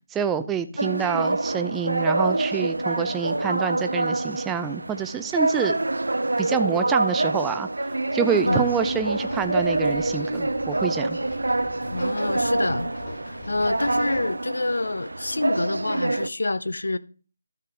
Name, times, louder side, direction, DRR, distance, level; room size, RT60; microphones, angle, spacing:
voice 1, 0.1-5.8 6.4-7.7 8.1-11.2, right 7 dB, 10° right, 0.4 m, -27 dB
sound 1, 0.8-16.3, right 2 dB, 80° right, 0.5 m, -26 dB
sound 2, 8.4-14.3, left 2 dB, 50° left, 4.1 m, -40 dB
voice 2, 11.9-12.9 13.3-17.0, left 2 dB, 75° left, 0.6 m, -27 dB
12.5 x 5.8 x 3.5 m
figure-of-eight pair, 160°, 0 cm